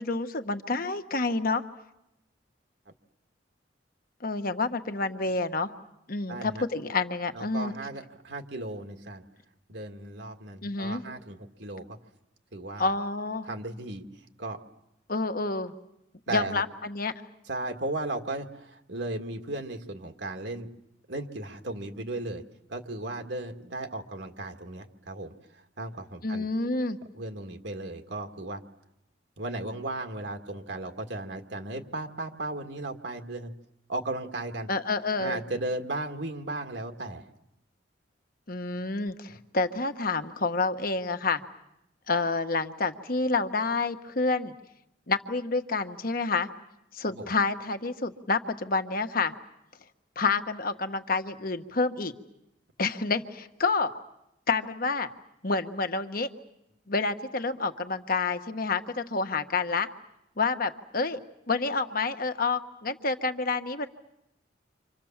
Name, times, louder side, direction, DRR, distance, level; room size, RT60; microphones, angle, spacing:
voice 1, 0.0-1.6 4.2-5.7 6.1-7.7 10.6-11.0 12.8-13.5 15.1-15.7 16.3-17.1 26.2-27.0 34.7-35.4 38.5-41.4 42.1-44.5 45.1-46.5 46.9-49.3 50.2-52.1 52.8-53.9 54.5-55.1 55.4-56.3 56.9-59.9 60.4-61.2 61.5-63.9, left 3 dB, 50° left, 8 dB, 1.3 m, -28 dB
voice 2, 6.3-6.6 7.3-9.2 9.7-12.0 12.5-12.9 13.4-14.1 14.4-14.6 16.3-16.6 17.5-20.7 21.1-22.4 22.7-26.5 27.1-28.6 29.4-33.5 33.9-34.7 35.2-37.3 47.1-47.3, right 2 dB, 65° right, 5 dB, 1.9 m, -36 dB
30.0 x 26.0 x 7.3 m, 0.85 s
head